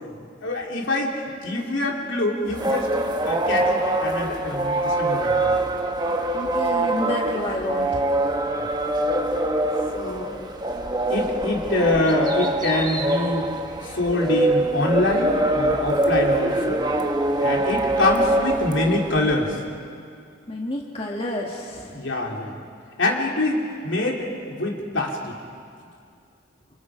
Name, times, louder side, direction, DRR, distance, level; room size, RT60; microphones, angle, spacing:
voice 1, 0.0-2.9 3.2-5.5 8.5-8.7 9.9-10.5 11.1-13.5 13.8-16.8 17.4-19.6 21.9-22.6 23.0-25.4, left 2 dB, 70° left, 0 dB, 3.5 m, -25 dB
sound 1, 2.5-19.5, right 1 dB, 20° right, 1.1 m, -24 dB
voice 2, 6.3-8.0 20.5-22.0, left 1 dB, 30° left, -1 dB, 1.7 m, -29 dB
28.5 x 28.5 x 5.1 m, 2.4 s
head